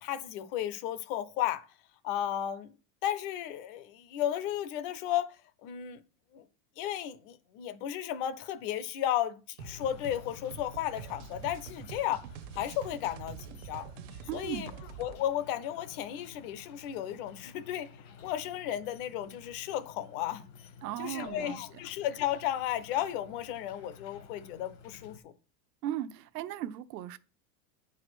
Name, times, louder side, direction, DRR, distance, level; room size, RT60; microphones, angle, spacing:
voice 1, 0.0-1.6 2.0-2.7 3.0-5.4 5.6-6.0 6.3-6.4 6.8-12.2 12.5-13.9 14.3-14.7 15.0-17.9 18.2-20.4 21.0-25.3, left 11 dB, 35° left, 0.6 m, -34 dB
sound 1, 9.6-25.2, left 6 dB, 80° left, 2.0 m, -53 dB
sound 2, 9.6-15.2, right 10 dB, 50° right, 0.8 m, -46 dB
voice 2, 14.3-14.7 20.8-21.6 25.8-27.2, right 12 dB, 75° right, 0.9 m, -37 dB
9.1 x 4.9 x 6.1 m
supercardioid pair, 165°, 49 cm